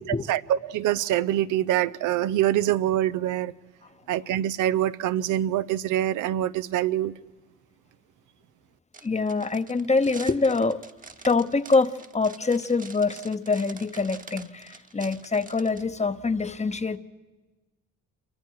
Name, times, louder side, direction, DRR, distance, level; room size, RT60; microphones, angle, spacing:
voice 1, 0.3-3.5 4.1-7.1, right 12 dB, 85° right, 0.6 m, -25 dB
sound 1, 8.9-15.8, right 4 dB, 25° right, 1.2 m, -46 dB
voice 2, 9.0-10.8 11.2-17.0, left 4 dB, 25° left, 0.9 m, -25 dB
27.5 x 24.0 x 4.7 m
cardioid pair, 90°, 30 cm